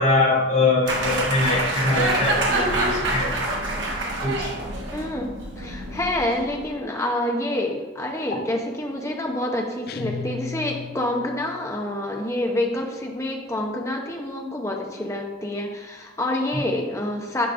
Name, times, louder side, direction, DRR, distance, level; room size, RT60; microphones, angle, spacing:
voice 1, 0.0-3.3 4.2-4.5, left 2 dB, 80° left, -7 dB, 2.0 m, -22 dB
sound 1, 0.9-6.7, right 2 dB, 70° right, 1.2 m, -26 dB
voice 2, 4.9-17.5, left 1 dB, 15° left, 1 dB, 0.7 m, -27 dB
sound 2, 9.9-11.6, left 5 dB, 50° left, 0.3 m, -35 dB
10.0 x 5.1 x 2.6 m, 1.2 s
head